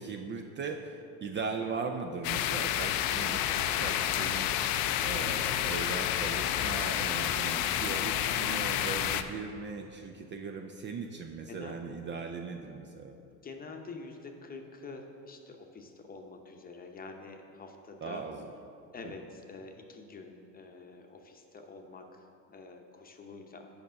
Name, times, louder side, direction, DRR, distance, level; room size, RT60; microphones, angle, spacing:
voice 1, 0.0-4.5 5.0-13.2 18.0-18.5 19.0-19.1, right 5 dB, 30° right, 4 dB, 0.4 m, -39 dB
sound 1, 2.2-9.2, left 11 dB, 65° left, 0.5 m, -30 dB
voice 2, 13.4-18.2 18.9-23.8, left 3 dB, 25° left, 3 dB, 0.8 m, -47 dB
7.0 x 5.3 x 6.3 m, 2.6 s
supercardioid pair, 110°, 37 cm